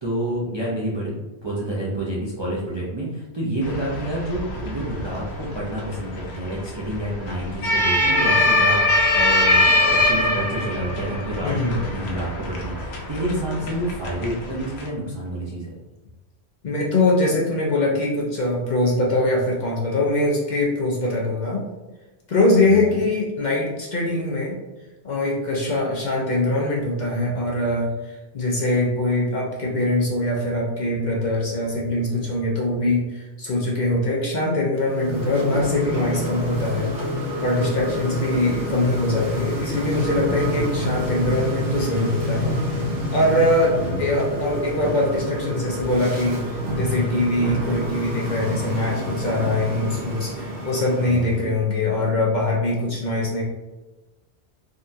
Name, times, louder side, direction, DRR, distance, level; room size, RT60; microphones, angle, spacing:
voice 1, 0.0-15.7 22.6-22.9 43.8-44.2 51.0-51.6, right 1 dB, 35° right, -6 dB, 0.5 m, -29 dB
sound 1, 3.6-14.9, left 1 dB, 75° left, 0.9 m, -23 dB
voice 2, 11.4-11.8 16.6-21.6 22.3-24.6 25.0-36.9 37.4-42.6 43.1-53.4, left 2 dB, 50° left, -3 dB, 0.6 m, -23 dB
sound 2, 34.8-51.4, equal, 65° right, 1.0 m, -27 dB
3.6 x 2.3 x 2.6 m, 1.1 s
omnidirectional pair, 1.1 m